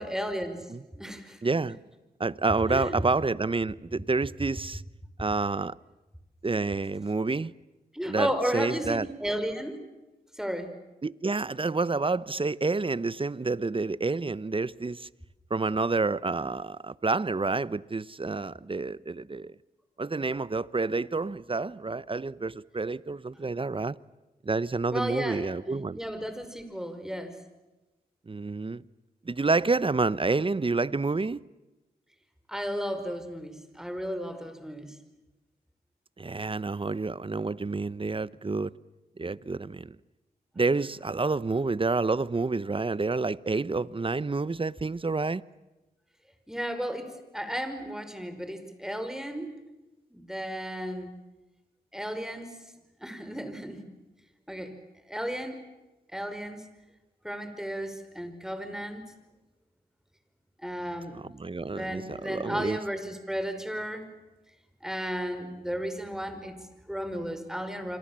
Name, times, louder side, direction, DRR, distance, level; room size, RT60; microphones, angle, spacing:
voice 1, 0.0-0.7 1.0-1.4 2.7-3.0 7.9-9.8 10.3-10.7 24.9-27.4 32.5-35.0 46.5-49.5 50.1-51.1 51.9-52.6 53.0-53.8 54.5-54.7 55.1-55.6 56.1-56.6 57.2-59.0 60.6-61.2 61.7-64.1 64.8-68.0, equal, 5° right, 5.5 m, -34 dB
voice 2, 1.4-1.8 2.2-4.8 5.2-5.7 6.4-7.5 8.1-9.1 11.0-15.1 15.5-19.5 20.0-24.0 24.4-26.0 28.3-28.8 29.3-31.4 36.2-38.7 39.2-40.0 40.6-45.4 61.4-62.8, right 3 dB, 30° right, 0.9 m, -29 dB
27.5 x 25.5 x 7.5 m
cardioid pair, 50°, 17 cm